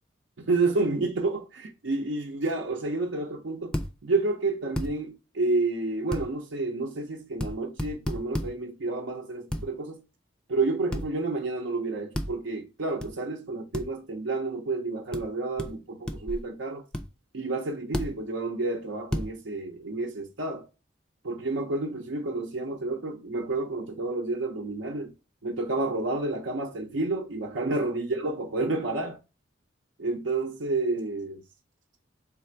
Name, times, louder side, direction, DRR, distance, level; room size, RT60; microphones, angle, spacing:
voice 1, 0.4-3.7 4.0-10.0 10.5-16.8 17.3-20.7 21.2-25.1 25.4-29.2 30.0-31.4, right 3 dB, 75° right, 0.6 m, -30 dB
sound 1, 3.7-3.9 4.8-4.9 6.1-6.3 7.4-7.5 7.8-8.5 9.5-9.7 10.9-11.1 12.1-12.3 13.0-13.1 13.7-13.9 15.1-15.2 15.6-15.7 16.1-16.4 16.9-17.0 17.9-18.1 19.1-19.3, left 1 dB, 5° left, 0.3 m, -30 dB
3.5 x 2.5 x 4.3 m
head